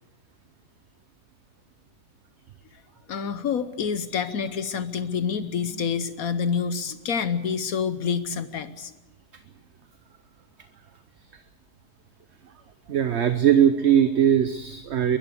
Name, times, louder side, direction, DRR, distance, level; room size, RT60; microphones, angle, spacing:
voice 1, 3.1-8.9, left 6 dB, 65° left, 13 dB, 1.3 m, -27 dB
voice 2, 12.9-15.2, right 9 dB, 50° right, 10 dB, 0.9 m, -20 dB
23.0 x 14.0 x 8.2 m, 1.1 s
omnidirectional pair, 1.7 m